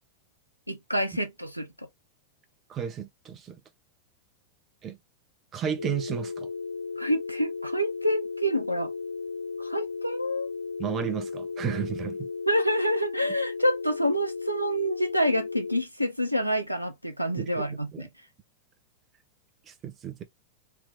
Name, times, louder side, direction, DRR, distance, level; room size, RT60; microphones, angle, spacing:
voice 1, 0.7-1.9 7.0-8.9 9.6-10.5 12.5-18.1, equal, 90° right, 0.7 m, -27 dB
voice 2, 2.7-3.6 4.8-5.0 5.5-6.5 10.8-12.3 17.4-18.1 19.7-20.2, right 8 dB, 30° right, 1.0 m, -33 dB
sound 1, 5.8-15.8, left 4 dB, 75° left, 0.4 m, -35 dB
3.5 x 3.0 x 2.7 m
figure-of-eight pair, 90°, 0 cm